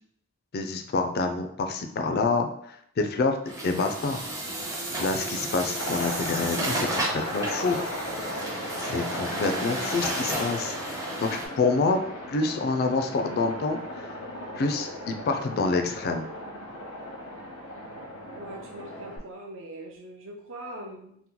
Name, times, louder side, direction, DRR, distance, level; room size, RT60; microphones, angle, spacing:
voice 1, 0.5-2.5 3.0-4.2 5.0-7.8 8.8-10.8 11.2-12.0 12.3-14.1 14.6-16.2, left 3 dB, 45° left, 6 dB, 0.3 m, -27 dB
Truck, 3.5-11.5, right 1 dB, 15° right, 0.5 m, -33 dB
Aircraft, 5.8-19.2, left 1 dB, 85° left, 0.8 m, -36 dB
voice 2, 18.4-21.2, right 1 dB, 60° right, 1 dB, 0.5 m, -41 dB
2.8 x 2.1 x 3.7 m, 0.70 s
head